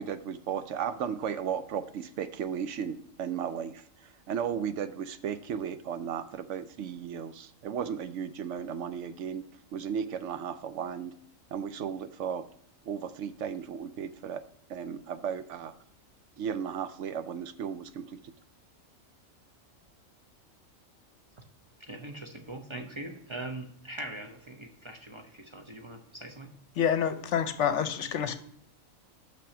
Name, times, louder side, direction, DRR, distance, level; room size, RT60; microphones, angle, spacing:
voice 1, 0.0-9.4 9.7-11.1 11.5-12.4 12.9-14.4 14.7-15.7 16.4-18.2, right 8 dB, 70° right, 11 dB, 0.8 m, -35 dB
voice 2, 21.8-26.5, right 2 dB, 25° right, 4 dB, 0.7 m, -41 dB
voice 3, 26.8-28.3, left 8 dB, 65° left, 10 dB, 0.9 m, -27 dB
6.2 x 5.8 x 5.9 m, 0.67 s
omnidirectional pair, 1.4 m